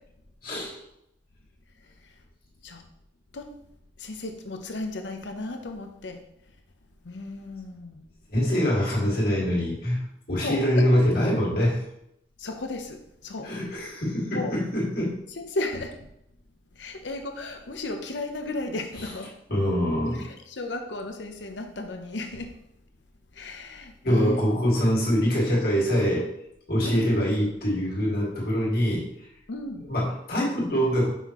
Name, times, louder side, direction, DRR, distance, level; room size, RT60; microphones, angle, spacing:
voice 1, 0.4-0.7 8.3-11.8 13.4-15.2 19.5-20.3 24.0-26.3 26.7-29.1 29.9-31.1, equal, 55° left, -5 dB, 2.1 m, -24 dB
voice 2, 1.8-2.1 2.6-2.8 3.3-3.5 4.0-6.2 7.0-8.0 10.4-11.1 12.4-13.5 14.3-14.5 15.3-16.1 16.7-19.3 20.1-22.6 23.3-24.4 26.8-27.0 29.5-29.9, left 2 dB, 80° left, 4 dB, 0.8 m, -35 dB
5.7 x 5.5 x 3.1 m, 0.79 s
head